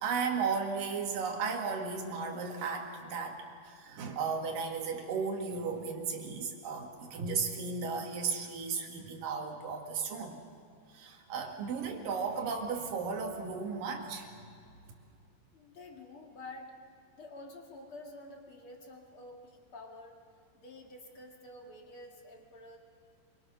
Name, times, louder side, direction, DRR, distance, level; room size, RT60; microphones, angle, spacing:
voice 1, 0.0-10.4 10.9-14.3, right 5 dB, 60° right, 3 dB, 3.1 m, -35 dB
voice 2, 15.5-16.7 17.1-20.2 20.5-22.8, left 2 dB, 40° left, 1 dB, 2.1 m, -49 dB
25.5 x 23.5 x 6.2 m, 2.4 s
omnidirectional pair, 4.8 m